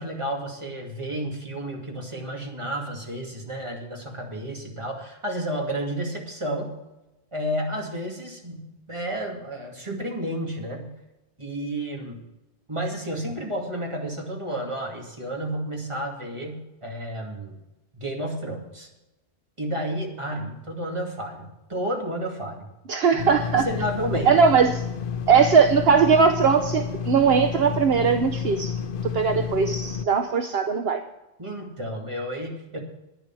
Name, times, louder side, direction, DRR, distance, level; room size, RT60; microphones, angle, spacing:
voice 1, 0.0-6.8 7.3-10.9 11.4-12.2 12.7-17.6 17.9-18.9 19.6-22.7 23.1-23.2 23.6-24.3 31.4-32.8, right 1 dB, 25° right, 0 dB, 2.5 m, -31 dB
voice 2, 22.9-23.7 24.2-24.8 25.3-31.0, right 6 dB, 65° right, 7 dB, 1.0 m, -20 dB
sound 1, 23.2-30.0, left 7 dB, 60° left, 0.7 m, -30 dB
11.0 x 10.5 x 6.0 m, 0.99 s
omnidirectional pair, 1.1 m